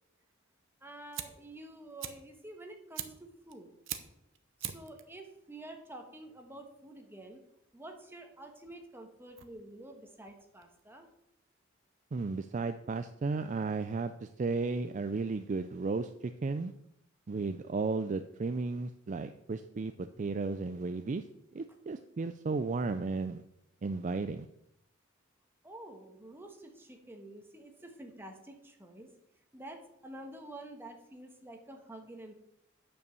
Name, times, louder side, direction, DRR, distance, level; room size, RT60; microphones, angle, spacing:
Fire, 0.7-11.2, right 11 dB, 65° right, 0.8 m, -46 dB
voice 1, 0.8-3.7 4.6-7.4 7.7-11.1 25.6-29.1 29.5-32.3, right 1 dB, 10° right, 3 dB, 1.3 m, -49 dB
voice 2, 12.1-16.7 17.3-21.2 21.5-23.4 23.8-24.5, right 3 dB, 35° right, 10 dB, 0.4 m, -34 dB
9.3 x 5.5 x 6.9 m, 0.81 s
head